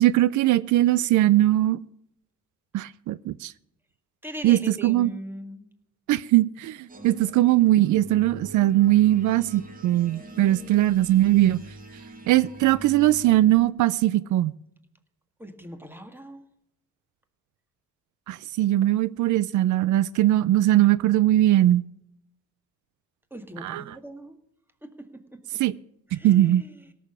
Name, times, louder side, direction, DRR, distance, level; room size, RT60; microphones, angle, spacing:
voice 1, 0.0-1.8 2.7-3.5 4.4-5.1 6.1-11.6 12.3-14.5 18.3-21.8 23.6-24.0 25.6-25.7 26.1-26.6, right 14 dB, 75° right, 19 dB, 0.5 m, -20 dB
voice 2, 4.2-5.7 7.0-7.1 15.4-16.4 23.3-24.3 24.8-24.9 26.1-26.7, equal, 5° right, 7 dB, 1.9 m, -39 dB
sound 1, 6.9-13.7, right 2 dB, 30° right, 2.2 m, -43 dB
17.0 x 7.0 x 7.1 m, 0.76 s
cardioid pair, 90°, 30 cm